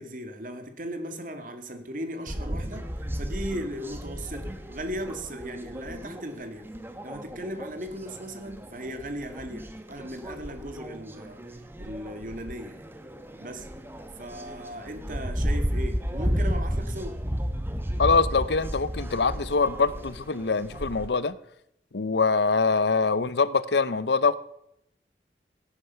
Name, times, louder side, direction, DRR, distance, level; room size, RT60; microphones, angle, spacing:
voice 1, 0.0-2.9 3.2-6.7 7.0-11.4 11.8-12.8 13.4-13.7 14.1-17.2, equal, 50° right, 2.1 m, -37 dB
sound 1, 2.3-21.1, equal, 15° right, 1.1 m, -33 dB
voice 2, 18.0-21.4 21.9-24.4, left 4 dB, 75° left, 0.7 m, -24 dB
17.0 x 9.9 x 5.8 m
head